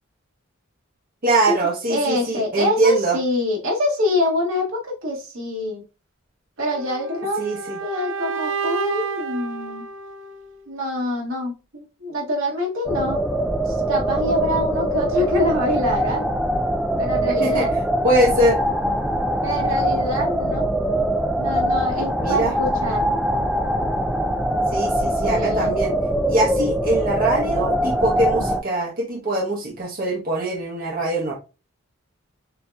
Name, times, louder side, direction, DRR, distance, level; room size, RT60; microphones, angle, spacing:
voice 1, 1.2-3.2 7.4-7.8 17.4-18.8 22.2-22.5 24.7-25.9 26.3-31.3, right 1 dB, 45° right, -2 dB, 0.9 m, -22 dB
voice 2, 1.9-5.8 6.6-7.4 7.8-9.9 10.7-13.2 13.7-16.3 17.0-17.8 19.4-20.7 21.4-23.1 25.0-25.8, left 1 dB, 85° right, -2 dB, 1.8 m, -25 dB
sound 1, 6.7-10.7, right 6 dB, 65° right, 0.6 m, -30 dB
sound 2, 12.8-28.6, right 1 dB, 5° right, 0.3 m, -22 dB
6.7 x 2.8 x 2.3 m, 0.31 s
head